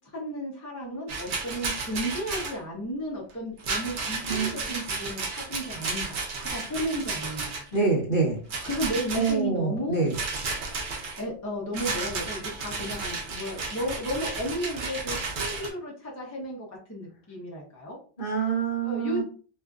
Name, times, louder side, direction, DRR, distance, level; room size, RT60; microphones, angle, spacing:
voice 1, 0.1-7.6 8.6-10.0 11.2-18.0 18.8-19.2, equal, 20° left, -3 dB, 0.5 m, -33 dB
Rattle, 1.1-2.6 3.6-7.8 8.5-9.4 10.1-11.2 11.7-15.7, right 4 dB, 55° right, 0.6 m, -33 dB
voice 2, 7.7-8.4 9.1-10.2 18.2-19.2, right 4 dB, 50° left, -7 dB, 0.9 m, -26 dB
2.5 x 2.4 x 2.3 m, 0.40 s
omnidirectional pair, 1.2 m